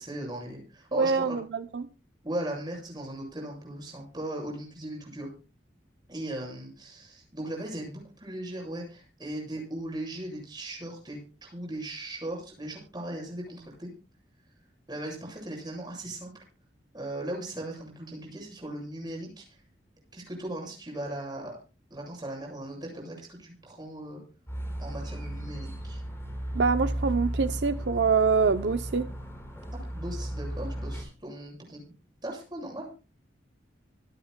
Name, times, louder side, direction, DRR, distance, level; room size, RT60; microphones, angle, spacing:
voice 1, 0.0-1.4 2.2-5.3 6.1-13.9 14.9-16.4 16.9-19.4 20.1-21.6 21.9-24.2 24.8-26.0 29.7-31.8 32.2-32.9, right 1 dB, 25° right, 7.5 m, -38 dB
voice 2, 0.9-1.9 26.5-29.1, right 5 dB, 70° right, 0.6 m, -25 dB
sound 1, 24.5-31.0, right 1 dB, 15° left, 4.8 m, -35 dB
25.5 x 10.0 x 2.2 m
head